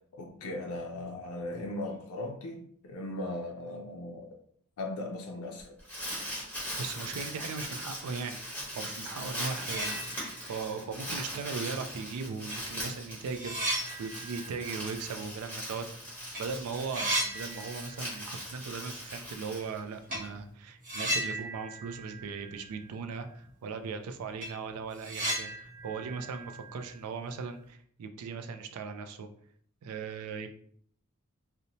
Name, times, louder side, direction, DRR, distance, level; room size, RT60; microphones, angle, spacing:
voice 1, 0.1-4.3 4.8-5.8, left 1 dB, 75° left, 1 dB, 0.4 m, -38 dB
Crumpling crinkling, 5.6-20.2, equal, 5° left, 1.0 m, -40 dB
voice 2, 6.8-8.4 8.7-29.3 29.8-30.5, right 5 dB, 85° right, 8 dB, 0.3 m, -38 dB
Shovel Pick Up, 9.5-10.6 11.0-11.1 12.0-12.1 12.5-16.4 16.7-18.3 18.5-18.6 20.1-20.3 20.8-23.0 23.2-23.3 23.8-23.9 24.2-27.4, right 1 dB, 40° right, 1.0 m, -36 dB
2.6 x 2.1 x 2.8 m, 0.62 s
head